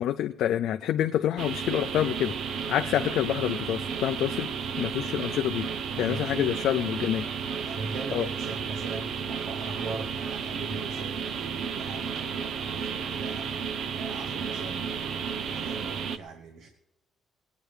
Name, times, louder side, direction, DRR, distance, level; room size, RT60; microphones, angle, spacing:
voice 1, 0.0-4.5 4.8-5.7 6.0-7.3 8.1-8.3, left 11 dB, 70° left, 6 dB, 0.4 m, -27 dB
sound 1, 1.4-16.2, right 6 dB, 55° right, 0.6 m, -33 dB
voice 2, 5.9-6.5 7.6-13.5 13.9-16.7, right 4 dB, 80° right, 4 dB, 1.4 m, -40 dB
21.0 x 9.1 x 4.9 m, 0.94 s
cardioid pair, 180°, 0 cm